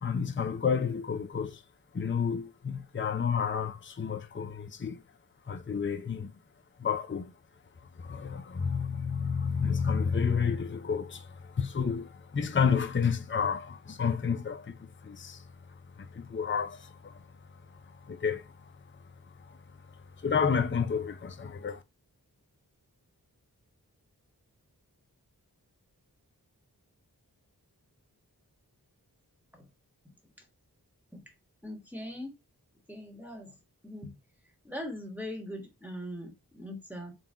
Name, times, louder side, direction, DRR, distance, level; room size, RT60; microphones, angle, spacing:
voice 1, 0.0-1.6 1.9-5.0 5.4-6.4 6.8-7.4 7.8-21.8, left 6 dB, 30° left, 0.5 m, -31 dB
voice 2, 31.6-32.3 32.9-33.5 33.8-34.1 34.6-37.1, left 1 dB, 5° right, 1.3 m, -41 dB
3.9 x 2.3 x 3.8 m
wide cardioid pair, 45°, 38 cm